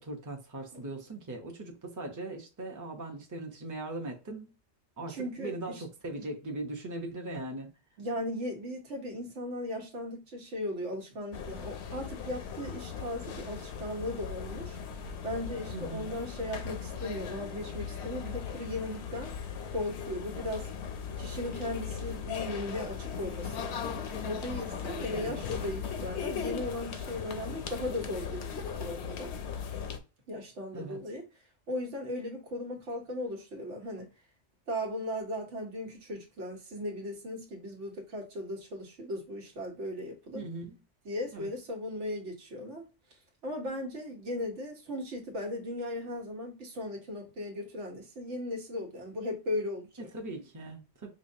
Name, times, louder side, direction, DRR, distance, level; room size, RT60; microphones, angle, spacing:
voice 1, 0.0-4.5 5.0-7.7 15.7-16.1 25.0-25.5 30.7-31.0 40.3-40.8 41.3-41.5 50.0-51.1, right 2 dB, 20° right, 0.6 m, -40 dB
voice 2, 5.1-5.8 8.0-14.8 15.2-19.3 19.7-20.7 21.2-29.3 30.3-31.2 31.7-34.1 34.7-40.5 41.0-42.8 43.4-50.1, left 1 dB, 90° right, 1.4 m, -37 dB
sound 1, 11.3-30.0, left 7 dB, 75° left, 0.9 m, -38 dB
5.2 x 2.2 x 2.6 m
omnidirectional pair, 1.2 m